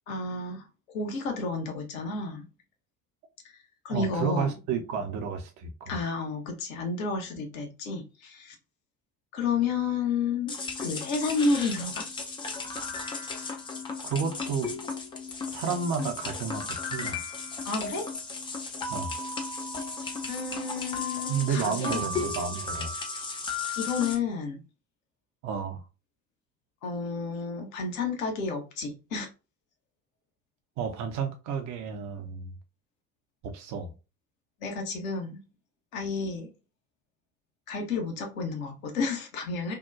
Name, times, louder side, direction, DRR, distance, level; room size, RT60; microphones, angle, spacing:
voice 1, 0.1-0.7 0.9-2.5 3.4-3.6 3.8-4.5 5.9-8.5 9.3-12.1 17.6-18.1 20.3-22.3 23.8-24.6 26.8-29.3 34.6-35.4 35.9-36.5 37.7-39.8, left 4 dB, 70° left, 0.8 m, -31 dB
voice 2, 3.9-5.9 14.0-14.8 15.5-17.2 18.9-19.2 21.3-22.9 25.4-25.8 30.8-32.5 33.4-33.9, right 6 dB, 40° right, 0.6 m, -31 dB
sound 1, 10.5-24.2, left 3 dB, 15° left, 0.3 m, -35 dB
2.7 x 2.1 x 2.3 m
figure-of-eight pair, 55°, 43 cm